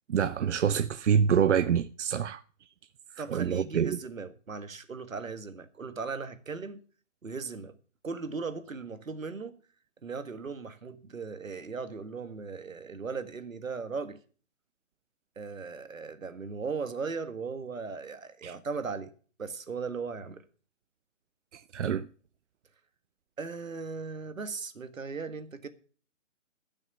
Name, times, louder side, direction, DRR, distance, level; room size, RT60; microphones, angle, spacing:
voice 1, 0.1-2.4 3.3-4.0 18.4-18.6 21.5-22.1, right 8 dB, 65° right, 0.7 m, -26 dB
voice 2, 3.2-6.8 7.2-7.8 8.0-9.6 10.0-14.2 15.4-19.1 19.4-20.5 23.4-25.7, right 4 dB, 85° right, 1.7 m, -37 dB
14.5 x 6.4 x 6.9 m
figure-of-eight pair, 145°, 39 cm